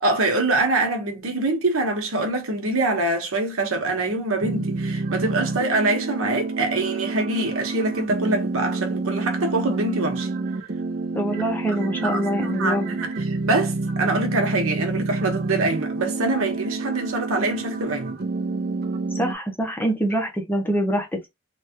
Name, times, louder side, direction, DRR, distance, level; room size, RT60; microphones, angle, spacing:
voice 1, 0.0-10.3 11.7-18.2, right 2 dB, 70° right, 1.0 m, -24 dB
sound 1, 4.4-19.3, right 3 dB, 45° right, 0.5 m, -28 dB
voice 2, 11.1-13.0 19.1-21.3, right 1 dB, 10° left, 0.6 m, -25 dB
3.2 x 2.2 x 2.8 m
head